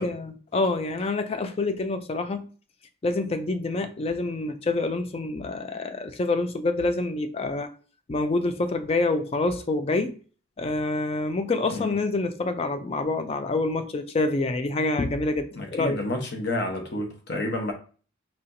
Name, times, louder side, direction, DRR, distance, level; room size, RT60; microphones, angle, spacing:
voice 1, 0.0-2.5 3.0-7.7 8.1-10.2 10.6-16.0, left 2 dB, 30° left, 0.3 m, -27 dB
voice 2, 15.5-17.7, left 1 dB, 55° left, 0.9 m, -30 dB
4.2 x 2.8 x 2.6 m
head